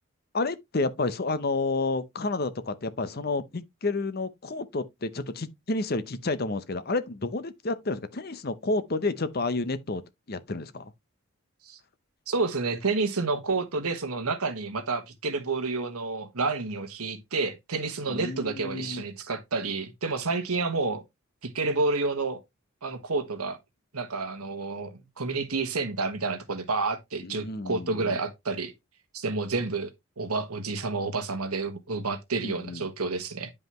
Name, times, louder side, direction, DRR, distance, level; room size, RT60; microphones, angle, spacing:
voice 1, 0.3-10.0 10.3-10.9 18.1-19.0 27.2-28.2 32.4-32.9, left 3 dB, 45° left, 0.7 m, -30 dB
voice 2, 12.3-21.0 21.4-22.4 22.8-23.6 23.9-28.7 29.1-29.9 30.2-33.5, right 3 dB, 85° right, 1.4 m, -29 dB
9.7 x 5.4 x 3.0 m
head